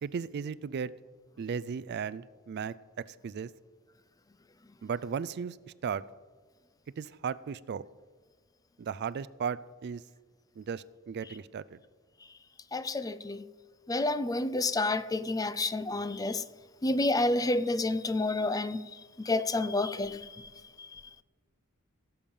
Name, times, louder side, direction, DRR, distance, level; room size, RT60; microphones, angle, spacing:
voice 1, 0.0-0.9 1.4-2.8 3.1-3.5 4.8-5.6 5.8-6.0 7.0-7.9 8.8-10.0 10.6-11.8, right 6 dB, 50° right, 0.4 m, -35 dB
voice 2, 12.7-13.4 13.9-16.4 16.8-18.8 19.2-20.3 20.8-21.0, left 2 dB, 15° left, 0.4 m, -29 dB
17.0 x 7.1 x 5.4 m
head